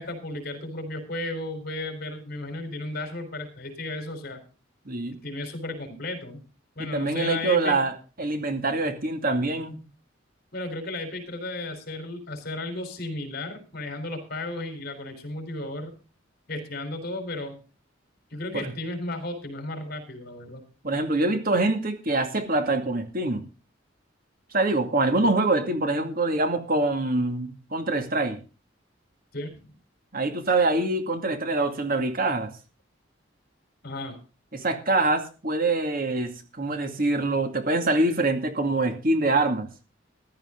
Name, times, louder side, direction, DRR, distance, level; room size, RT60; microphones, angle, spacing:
voice 1, 0.0-4.4 5.2-6.4 6.8-7.8 10.5-15.9 16.5-17.6 18.3-20.6 29.3-29.7 33.8-34.2, left 2 dB, 55° left, 7 dB, 4.2 m, -34 dB
voice 2, 4.9-5.2 6.8-9.8 18.5-18.7 20.8-23.4 24.5-28.4 30.1-32.5 34.5-39.7, right 2 dB, 50° right, 6 dB, 2.3 m, -25 dB
15.0 x 12.5 x 3.8 m, 0.34 s
head